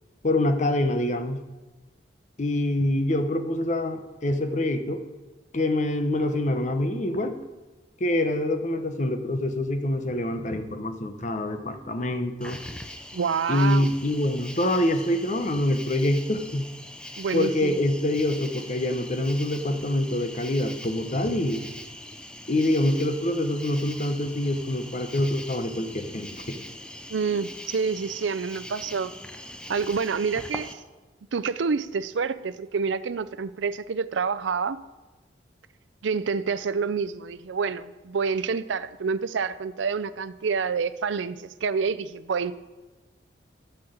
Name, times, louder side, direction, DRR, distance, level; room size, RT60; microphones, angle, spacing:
voice 1, 0.2-1.4 2.4-5.0 5.5-7.4 8.0-12.6 13.5-16.7 17.3-21.7 22.5-26.6, left 1 dB, 40° left, 8 dB, 0.8 m, -25 dB
Cricket, 12.4-30.7, left 1 dB, 5° left, 0.5 m, -42 dB
voice 2, 13.1-13.9 17.2-17.8 27.1-29.1 29.7-30.8 31.3-34.8 36.0-42.5, right 5 dB, 85° right, 14 dB, 0.5 m, -28 dB
12.5 x 4.5 x 7.8 m, 1.2 s
head